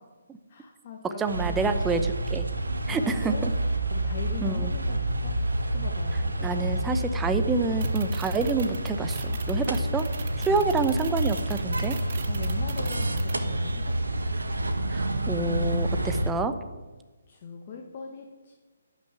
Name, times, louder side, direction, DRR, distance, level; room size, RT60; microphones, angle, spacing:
voice 1, 0.5-1.9 2.9-3.5 3.9-5.4 5.7-7.1 10.5-10.9 12.3-14.6 17.3-18.5, left 6 dB, 40° left, 1 dB, 1.7 m, -41 dB
voice 2, 1.2-2.5 2.9-3.5 4.4-4.7 6.4-10.1 10.4-12.0 14.9-16.5, right 4 dB, 10° right, 8 dB, 0.8 m, -28 dB
sound 1, 1.3-16.3, right 1 dB, 85° right, 1.5 m, -28 dB
sound 2, 7.8-13.3, right 8 dB, 45° right, 1.2 m, -40 dB
11.5 x 6.7 x 9.5 m, 1.3 s
figure-of-eight pair, 140°, 0 cm